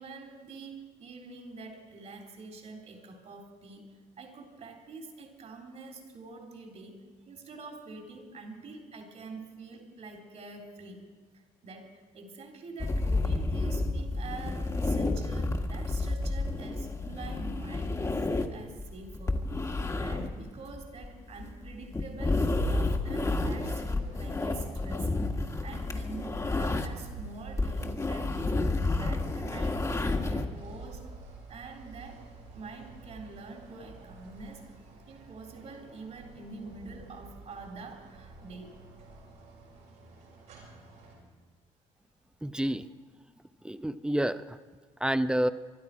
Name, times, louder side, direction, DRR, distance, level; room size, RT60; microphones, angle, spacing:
voice 1, 0.0-11.0 11.6-19.4 20.0-25.2 25.6-31.2 31.5-32.2 32.5-34.6 35.1-38.8 40.7-40.8, right 3 dB, 55° right, 1 dB, 3.5 m, -46 dB
sound 1, 12.8-27.1 27.4-30.5, left 2 dB, 20° left, 1.5 m, -30 dB
sound 2, 22.5-41.2, right 4 dB, 85° right, 6.2 m, -46 dB
voice 2, 42.4-42.9 43.6-44.6 45.0-45.5, right 1 dB, 5° right, 12 dB, 0.7 m, -28 dB
24.5 x 12.0 x 4.9 m, 1.4 s
supercardioid pair, 80°, 14 cm